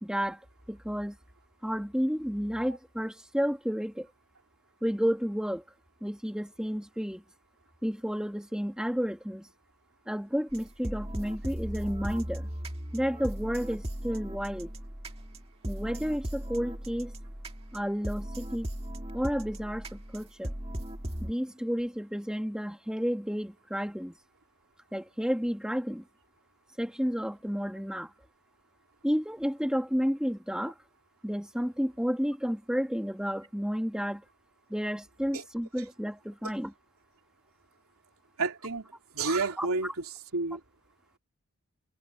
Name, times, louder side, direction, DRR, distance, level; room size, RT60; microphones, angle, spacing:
voice 1, 0.0-1.2 1.6-4.1 4.8-5.6 6.0-7.2 7.8-9.5 10.1-12.5 12.9-14.7 15.7-17.1 17.7-18.7 19.1-20.5 21.2-24.2 24.9-26.1 26.8-28.1 29.0-30.8 31.2-34.2 34.7-36.7 39.6-39.7, equal, 5° right, 2.3 m, -31 dB
sound 1, 10.5-21.3, equal, 25° right, 2.2 m, -37 dB
voice 2, 38.4-39.9 40.3-40.6, right 3 dB, 85° right, 3.3 m, -30 dB
head